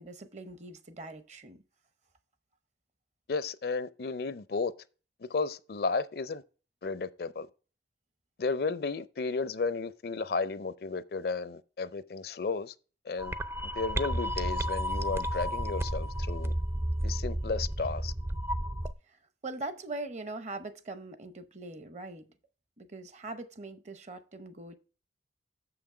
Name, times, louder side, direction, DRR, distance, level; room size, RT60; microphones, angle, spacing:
voice 1, 0.0-1.6 19.4-22.3 22.8-24.7, right 2 dB, 40° right, 0.8 m, -41 dB
voice 2, 3.3-4.7 5.3-6.4 6.8-7.5 8.4-12.7 13.1-13.3 13.8-16.5 17.0-18.1, left 4 dB, 55° left, 0.5 m, -33 dB
sound 1, 13.2-18.9, equal, 15° right, 0.3 m, -32 dB
7.0 x 5.8 x 4.8 m
head